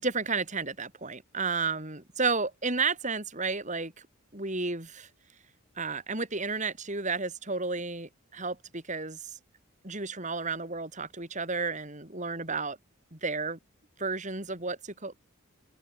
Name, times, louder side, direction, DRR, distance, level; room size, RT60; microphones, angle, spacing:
voice 1, 0.0-3.9 4.3-5.1 5.8-9.4 9.8-12.8 13.1-13.6 14.0-15.2, right 4 dB, 35° right, 4.8 m, -32 dB
open air
head